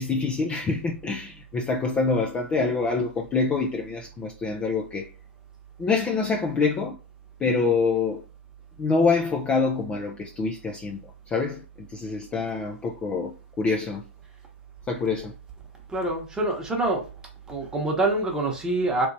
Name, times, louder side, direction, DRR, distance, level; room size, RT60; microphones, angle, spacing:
voice 1, 0.0-5.1 5.8-7.0 7.4-8.2 8.8-11.0 11.3-14.0 14.9-15.3, left 4 dB, 15° left, 0.4 m, -26 dB
voice 2, 15.9-17.1 17.5-19.1, right 2 dB, 10° right, 1.0 m, -25 dB
3.1 x 3.0 x 2.6 m
hypercardioid pair, 135°, 7 cm